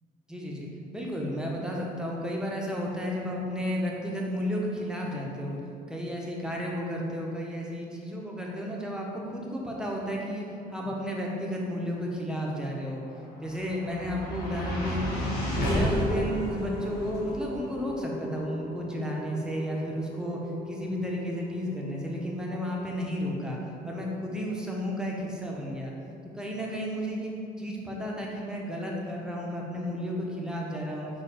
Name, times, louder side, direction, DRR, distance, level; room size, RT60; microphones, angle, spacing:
voice 1, 0.3-5.6 5.9-10.4 10.7-13.0 13.4-15.3 15.7-20.4 20.7-23.6 23.8-25.9 26.3-27.3 27.6-31.1, equal, 5° right, -2 dB, 0.6 m, -33 dB
sound 1, 13.0-25.4, equal, 80° left, 1.1 m, -34 dB
4.1 x 2.4 x 4.2 m, 2.5 s
cardioid pair, 110°, 17 cm